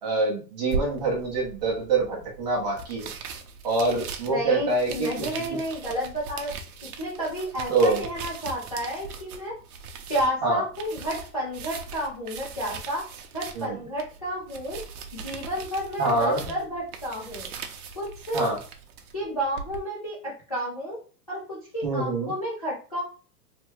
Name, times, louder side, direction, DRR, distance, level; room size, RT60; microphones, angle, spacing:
voice 1, 0.0-3.1 3.6-5.1 5.4-5.6 7.7-8.0 10.4-10.6 13.6-13.8 16.0-16.4 18.3-18.6 21.8-22.3, right 3 dB, 25° right, -3 dB, 0.6 m, -25 dB
sound 1, 0.7-19.8, right 5 dB, 65° right, 0.7 m, -39 dB
voice 2, 4.3-6.5 7.0-9.5 10.1-13.0 13.3-14.8 15.1-17.5 18.0-18.5 19.1-21.0 21.3-23.0, equal, 25° left, -8 dB, 0.4 m, -31 dB
3.3 x 2.2 x 3.0 m, 0.37 s
supercardioid pair, 175°, 49 cm